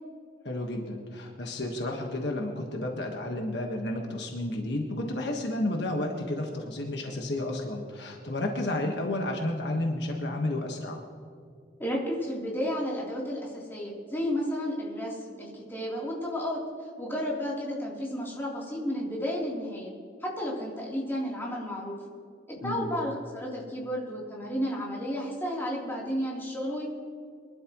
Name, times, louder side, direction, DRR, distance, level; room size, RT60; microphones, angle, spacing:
voice 1, 0.4-11.0 22.6-22.9, left 1 dB, 65° left, 2 dB, 1.5 m, -31 dB
voice 2, 11.8-16.6 17.0-19.9 20.2-22.0 22.5-26.9, equal, 10° left, -5 dB, 3.4 m, -32 dB
23.5 x 12.5 x 3.1 m, 2.4 s
head